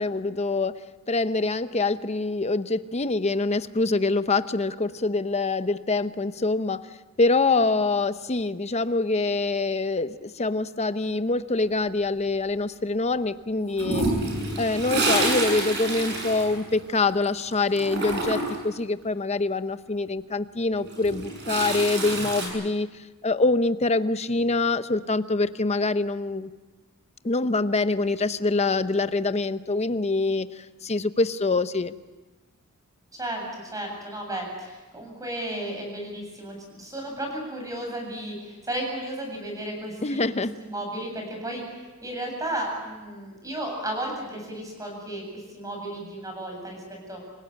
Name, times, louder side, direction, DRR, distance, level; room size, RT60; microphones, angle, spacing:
voice 1, 0.0-6.9 7.2-14.0 14.6-22.9 23.2-26.5 27.2-31.9 40.0-40.5, left 3 dB, 30° left, 12 dB, 0.8 m, -25 dB
Toilet flush, 13.8-17.3 17.5-18.7 20.7-22.5, right 2 dB, 50° right, 7.5 m, -27 dB
voice 2, 33.2-41.6 42.0-47.2, right 1 dB, 15° right, 2 dB, 8.0 m, -34 dB
27.5 x 17.0 x 8.9 m, 1.2 s
head